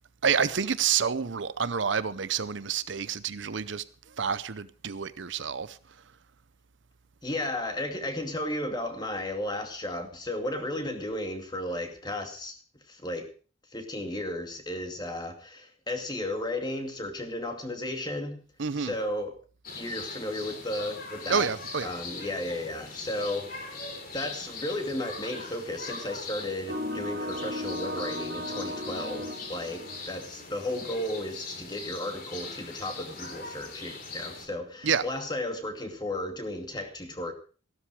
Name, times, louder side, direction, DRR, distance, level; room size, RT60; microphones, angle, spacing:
voice 1, 0.2-3.8 4.2-5.8 18.6-18.9 21.3-21.9 34.8-35.0, right 6 dB, 65° right, 0.7 m, -28 dB
voice 2, 7.2-12.6 12.9-13.3 13.7-18.4 18.8-19.4 19.8-21.5 21.8-23.9 24.1-37.3, left 1 dB, 20° left, 2.4 m, -34 dB
sound 1, 19.6-34.5, left 3 dB, 45° left, 3.7 m, -41 dB
sound 2, 26.7-30.6, left 1 dB, 50° right, 2.6 m, -35 dB
15.5 x 13.0 x 4.8 m
head